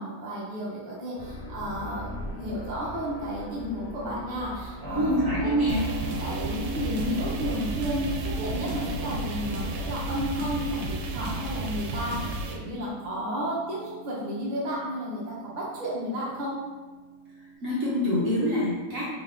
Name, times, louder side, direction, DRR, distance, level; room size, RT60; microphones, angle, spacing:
voice 1, 0.0-5.1 5.4-5.5 6.2-16.6, equal, 35° right, -7 dB, 0.8 m, -32 dB
sound 1, 1.2-12.4, equal, 60° left, 0.8 m, -41 dB
Keyboard (musical), 4.8-17.5, right 1 dB, ahead, 1.1 m, -41 dB
voice 2, 4.9-5.9 17.6-19.1, equal, 55° right, -7 dB, 1.1 m, -25 dB
sound 2, 5.7-12.6, right 2 dB, 90° right, 1.2 m, -33 dB
3.7 x 2.6 x 3.5 m, 1.3 s
omnidirectional pair, 1.9 m